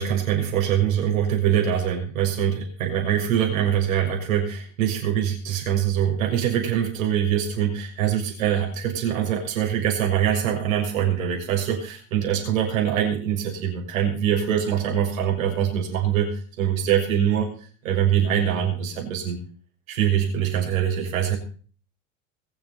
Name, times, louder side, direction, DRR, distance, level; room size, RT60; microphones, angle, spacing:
voice 1, 0.0-16.3 16.6-17.5 17.8-19.4 19.9-21.4, right 9 dB, 80° right, 1 dB, 6.5 m, -23 dB
22.5 x 8.1 x 5.6 m, 0.42 s
hypercardioid pair, 90°, 40 cm